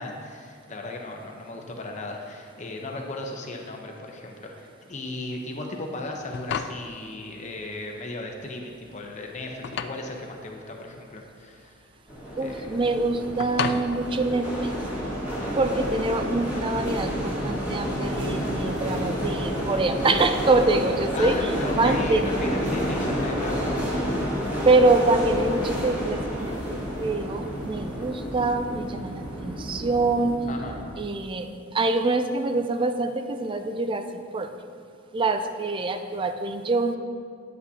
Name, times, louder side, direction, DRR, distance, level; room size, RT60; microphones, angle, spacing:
voice 1, 0.0-11.8 12.4-12.7 15.3-15.5 21.1-23.9 30.5-30.7, left 2 dB, 35° left, 1 dB, 0.8 m, -36 dB
sound 1, 6.1-15.1, left 6 dB, 55° left, 0.3 m, -36 dB
sound 2, 12.1-30.9, equal, 10° right, 1.8 m, -30 dB
voice 2, 12.4-14.7 15.6-21.5 21.8-22.2 24.6-30.4 31.0-34.5 35.1-37.0, right 3 dB, 25° right, 8 dB, 0.4 m, -25 dB
9.4 x 8.4 x 2.8 m, 2.3 s
head